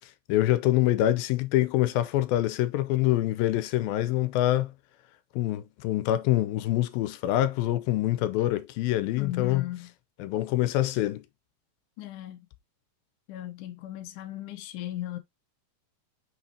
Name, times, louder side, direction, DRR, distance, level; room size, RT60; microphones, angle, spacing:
voice 1, 0.3-4.7 5.4-9.6 10.2-11.2, left 14 dB, 90° left, 2.6 m, -25 dB
voice 2, 9.2-9.9 12.0-12.4 13.3-15.2, left 14 dB, 70° left, 2.3 m, -37 dB
6.4 x 5.6 x 2.8 m
omnidirectional pair, 4.1 m